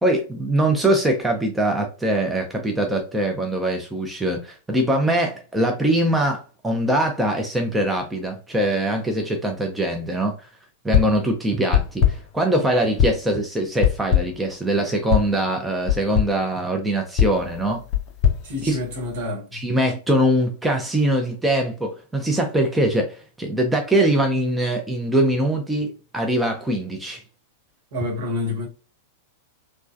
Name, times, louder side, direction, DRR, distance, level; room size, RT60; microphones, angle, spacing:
voice 1, 0.0-10.4 10.8-17.8 18.6-18.8 19.5-27.2, right 1 dB, 5° right, 0.6 m, -22 dB
sound 1, 10.9-11.3 11.7-12.4 13.0-13.3 13.8-14.5 15.1-15.4 15.9-16.4 17.2-19.2, left 9 dB, 35° left, 0.6 m, -22 dB
voice 2, 18.4-19.6 27.9-28.7, left 2 dB, 55° right, 1.2 m, -28 dB
3.0 x 2.2 x 2.5 m
figure-of-eight pair, 95°, 0 cm